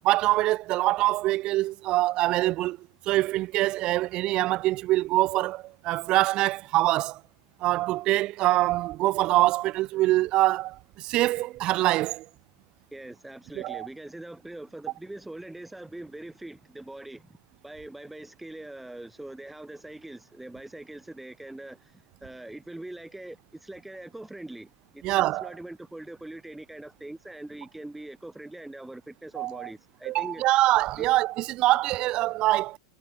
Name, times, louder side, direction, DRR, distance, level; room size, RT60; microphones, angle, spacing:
voice 1, 0.0-2.8 3.1-7.2 7.6-12.2 13.6-13.9 25.0-25.5 29.4-29.7 30.1-32.8, right 17 dB, 40° right, 0.6 m, -24 dB
voice 2, 12.9-17.4 17.6-30.4 31.0-31.1, right 1 dB, 5° right, 3.4 m, -42 dB
hypercardioid pair, 105°, 2 cm